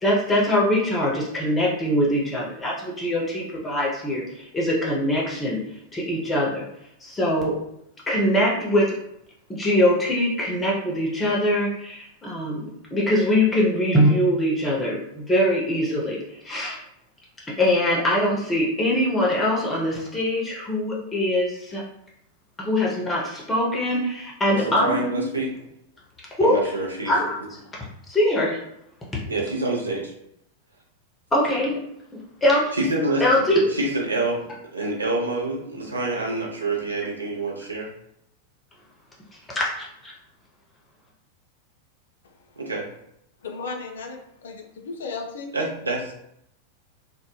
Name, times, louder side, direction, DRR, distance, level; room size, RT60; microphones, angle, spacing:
voice 1, 0.0-5.6 5.9-6.7 7.0-7.6 8.1-9.0 9.5-16.8 17.5-21.8 22.6-25.0 26.3-26.6 27.1-27.4 28.1-28.6 31.3-31.8 32.4-32.7 33.2-33.6 39.5-40.1, left 1 dB, 15° left, -3 dB, 0.6 m, -22 dB
voice 2, 24.5-25.5 26.4-27.1 29.3-30.1 32.7-33.2 33.7-34.4 34.7-37.9 42.6-42.8 45.5-46.1, right 2 dB, 80° right, -2 dB, 0.5 m, -26 dB
voice 3, 43.4-45.5, left 4 dB, 65° left, 3 dB, 0.4 m, -35 dB
2.0 x 2.0 x 2.9 m, 0.75 s
figure-of-eight pair, 90°, 0 cm